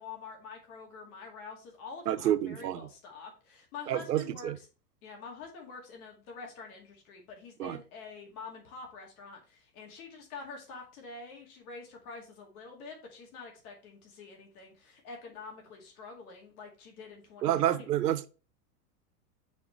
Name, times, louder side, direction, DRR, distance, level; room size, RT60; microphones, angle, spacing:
voice 1, 0.0-4.6 5.0-18.0, left 4 dB, 60° left, 2.3 m, -46 dB
voice 2, 2.1-2.8 3.9-4.6 7.6-7.8 17.4-18.3, right 12 dB, 80° right, 0.7 m, -29 dB
7.1 x 4.3 x 3.2 m
hypercardioid pair, 95°, 47 cm